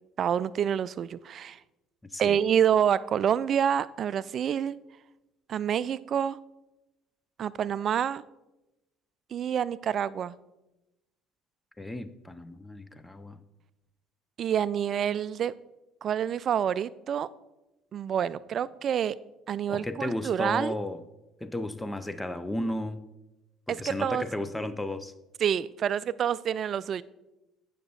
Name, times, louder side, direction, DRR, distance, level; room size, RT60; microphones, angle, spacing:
voice 1, 0.2-1.6 2.2-4.8 5.5-6.4 7.4-8.2 9.3-10.4 14.4-15.5 16.0-17.3 17.9-19.2 19.5-20.8 23.7-24.2 25.4-27.0, right 9 dB, 50° right, 19 dB, 0.3 m, -27 dB
voice 2, 11.8-13.4 19.7-21.0 21.4-23.0 23.7-25.1, left 1 dB, 10° left, 12 dB, 0.6 m, -34 dB
9.1 x 6.6 x 4.1 m, 0.99 s
hypercardioid pair, 65°, 0 cm